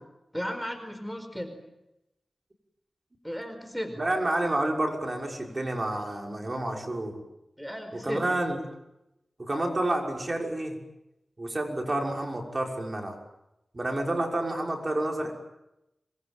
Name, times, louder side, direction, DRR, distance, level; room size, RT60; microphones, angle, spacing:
voice 1, 0.3-1.6 3.2-4.0 7.6-8.2, equal, ahead, 7 dB, 4.7 m, -35 dB
voice 2, 4.0-7.2 7.9-8.6 9.4-10.8 11.4-13.2 13.7-15.3, right 1 dB, 35° right, 2 dB, 6.0 m, -29 dB
27.0 x 22.0 x 9.1 m, 0.91 s
cardioid pair, 55°, 0 cm